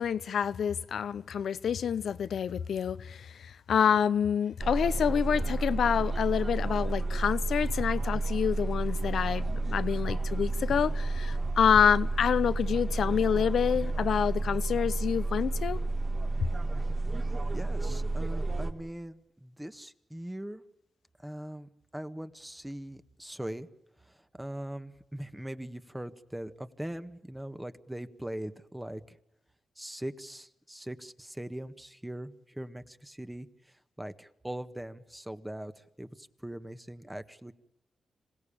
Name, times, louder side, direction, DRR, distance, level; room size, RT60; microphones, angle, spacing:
voice 1, 0.0-15.8, left 8 dB, 75° left, 0.8 m, -27 dB
sound 1, 4.6-18.7, right 2 dB, 40° right, 4.1 m, -31 dB
voice 2, 17.5-20.6 21.2-23.7 24.0-29.2 29.7-37.5, right 1 dB, 10° right, 1.6 m, -41 dB
26.5 x 17.0 x 8.7 m
cardioid pair, 60°, 0 cm